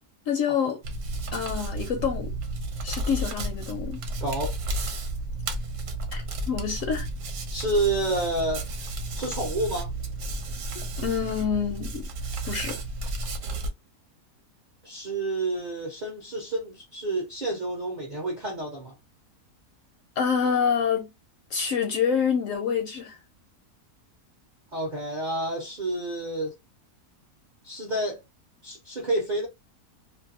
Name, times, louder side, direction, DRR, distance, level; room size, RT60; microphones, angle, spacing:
voice 1, 0.3-0.8 1.3-2.3 2.8-4.0 6.1-7.1 11.0-12.1 12.4-12.8 20.2-21.1 21.5-23.2, left 7 dB, 70° left, 0.8 m, -27 dB
Hands, 0.8-13.7, right 2 dB, 65° right, 1.0 m, -32 dB
voice 2, 4.2-4.6 7.5-8.6 9.2-9.9 14.8-18.9 24.7-26.6 27.6-28.2 28.6-29.5, right 2 dB, 40° right, 0.7 m, -29 dB
2.6 x 2.5 x 2.7 m
omnidirectional pair, 1.6 m